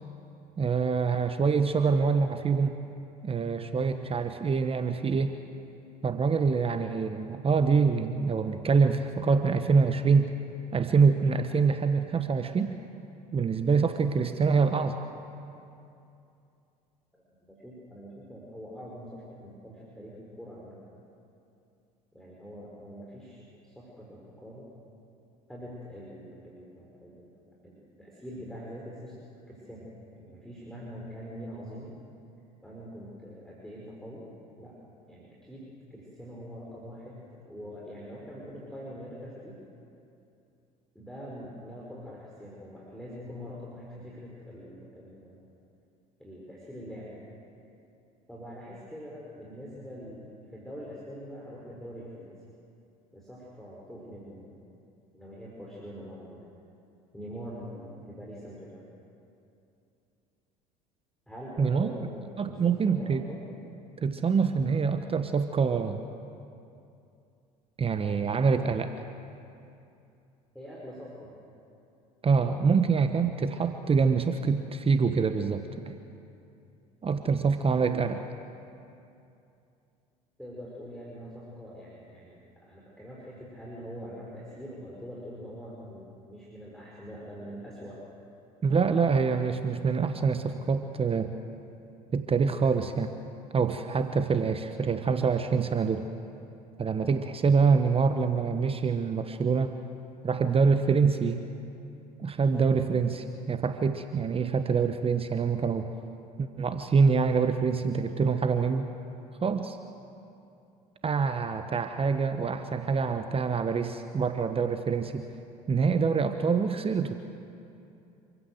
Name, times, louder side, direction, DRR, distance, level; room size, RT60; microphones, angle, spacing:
voice 1, 0.6-2.8 3.2-5.4 6.0-10.3 10.7-12.7 13.3-15.0 61.6-61.9 62.4-63.2 64.0-66.0 67.8-68.9 72.2-75.9 77.0-78.2 88.6-91.3 92.1-93.1 93.5-96.1 96.8-99.8 100.2-101.4 102.2-105.9 106.4-108.9 109.4-109.8 111.0-115.3 115.7-117.2, right 5 dB, 25° right, 8 dB, 1.1 m, -25 dB
voice 2, 17.6-20.8 22.1-24.7 25.5-31.9 32.6-34.3 34.6-34.8 35.1-39.6 40.9-45.4 46.2-47.3 48.3-52.3 53.1-54.6 55.1-56.5 57.1-58.8 61.3-63.4 70.5-71.4 80.4-88.0, equal, ahead, -4 dB, 5.1 m, -44 dB
27.0 x 15.5 x 8.0 m, 2.7 s
hypercardioid pair, 65°, 21 cm